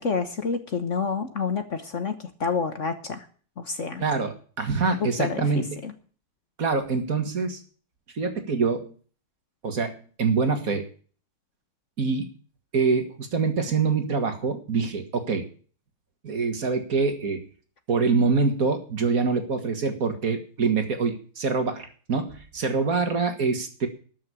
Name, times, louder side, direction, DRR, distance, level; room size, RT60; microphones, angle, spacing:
voice 1, 0.0-3.3 3.6-4.0 5.0-5.9, left 5 dB, 45° left, 9 dB, 1.1 m, -29 dB
voice 2, 4.0-5.7 6.6-7.6 8.1-8.9 9.6-10.8 12.0-12.3 12.7-15.4 16.2-17.4 17.9-23.9, right 4 dB, 40° right, 7 dB, 2.2 m, -25 dB
13.0 x 6.4 x 9.8 m, 0.41 s
omnidirectional pair, 2.4 m